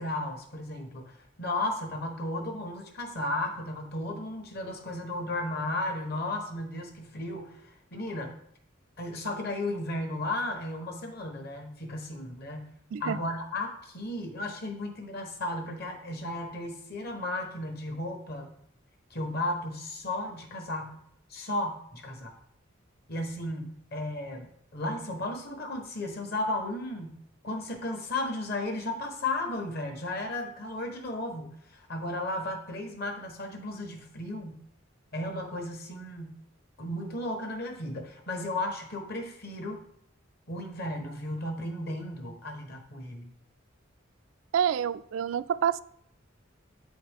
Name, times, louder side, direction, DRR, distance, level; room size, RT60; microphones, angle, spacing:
voice 1, 0.0-8.4 9.0-12.7 13.0-18.5 19.1-21.0 21.3-22.3 23.1-27.2 27.4-34.6 35.1-36.4 36.8-39.8 40.5-43.3, left 1 dB, 55° left, 4 dB, 1.2 m, -34 dB
voice 2, 44.5-45.8, right 8 dB, 85° right, 16 dB, 0.3 m, -27 dB
8.3 x 4.2 x 3.6 m, 0.69 s
head